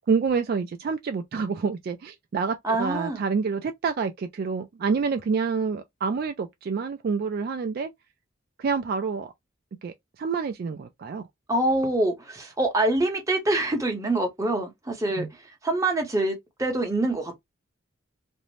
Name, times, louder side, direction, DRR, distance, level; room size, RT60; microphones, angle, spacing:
voice 1, 0.1-7.9 8.6-9.3 9.8-11.2 15.2-15.3, right 5 dB, 50° right, 0.3 m, -28 dB
voice 2, 2.6-3.2 11.5-15.3 15.6-17.4, right 2 dB, 15° right, 0.8 m, -25 dB
2.6 x 2.0 x 3.1 m
head